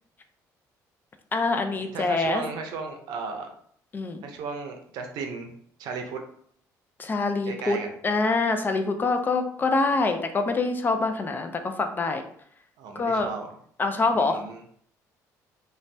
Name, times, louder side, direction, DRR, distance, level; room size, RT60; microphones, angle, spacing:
voice 1, 1.3-2.4 3.9-4.2 7.0-7.8 8.0-12.2 13.0-13.3 13.8-14.4, left 3 dB, 30° left, 7 dB, 0.4 m, -25 dB
voice 2, 1.9-3.5 4.2-5.5 5.8-6.2 7.4-7.9 12.8-13.6 14.1-14.6, right 5 dB, 80° right, 4 dB, 0.5 m, -35 dB
2.6 x 2.2 x 3.2 m, 0.63 s
cardioid pair, 105°, 7 cm